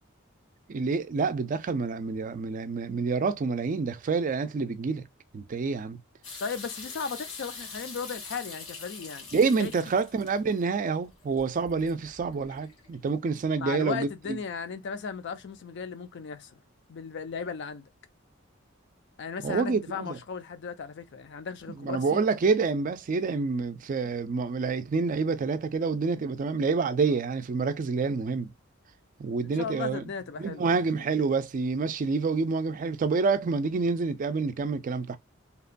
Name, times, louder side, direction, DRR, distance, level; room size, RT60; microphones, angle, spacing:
voice 1, 0.7-5.0 5.3-6.0 9.3-14.4 19.4-20.2 21.8-28.5 29.2-30.0 30.4-35.2, right 4 dB, 40° right, 0.3 m, -28 dB
sound 1, 6.2-13.1, left 4 dB, 90° left, 1.4 m, -44 dB
voice 2, 6.4-9.2 9.6-9.7 13.6-16.5 16.9-17.9 19.2-22.2 29.5-31.1, left 5 dB, 55° left, 0.4 m, -36 dB
2.9 x 2.2 x 2.4 m
head